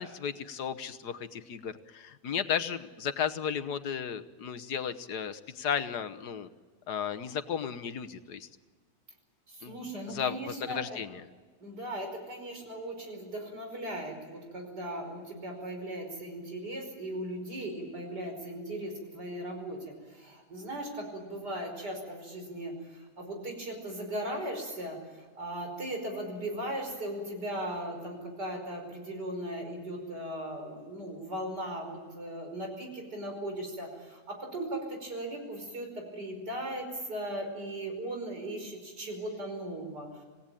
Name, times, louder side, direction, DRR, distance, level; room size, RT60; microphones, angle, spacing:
voice 1, 0.0-6.5 6.9-8.5 9.6-9.8 10.1-11.2, left 8 dB, 75° left, 9 dB, 1.6 m, -34 dB
voice 2, 9.5-11.0 11.6-40.2, right 1 dB, 85° right, 3 dB, 5.7 m, -38 dB
27.0 x 17.0 x 9.0 m, 1.5 s
omnidirectional pair, 1.7 m